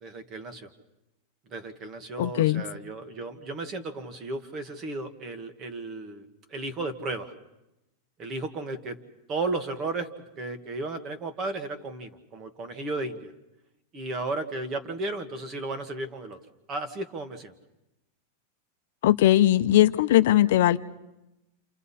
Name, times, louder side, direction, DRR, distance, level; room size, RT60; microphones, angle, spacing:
voice 1, 0.0-0.7 1.5-7.3 8.2-9.0 9.3-10.1 10.4-13.3 13.9-16.4 16.7-17.5, right 2 dB, 25° right, 1.6 m, -34 dB
voice 2, 2.2-2.6 19.0-20.8, left 13 dB, 65° left, 0.7 m, -19 dB
28.5 x 28.0 x 4.2 m
supercardioid pair, 165°, 0 cm